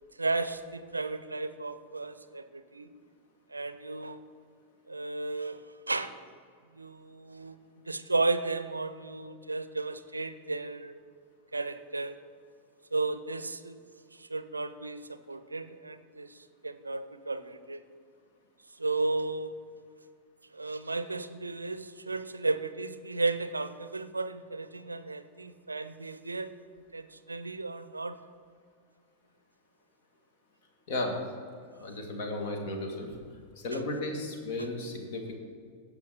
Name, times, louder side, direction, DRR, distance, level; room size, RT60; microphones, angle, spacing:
voice 1, 0.2-2.9 3.5-4.2 4.9-6.1 6.7-7.6 7.9-11.0 11.5-12.2 12.9-13.8 14.1-17.8 18.8-19.5 20.5-26.5 26.9-28.1 33.7-33.8, right 3 dB, 80° right, 12 dB, 0.5 m, -34 dB
voice 2, 31.8-33.1 33.6-35.3, left 2 dB, 50° left, 3 dB, 1.8 m, -34 dB
17.0 x 5.8 x 4.1 m, 2.2 s
figure-of-eight pair, 90°, 0 cm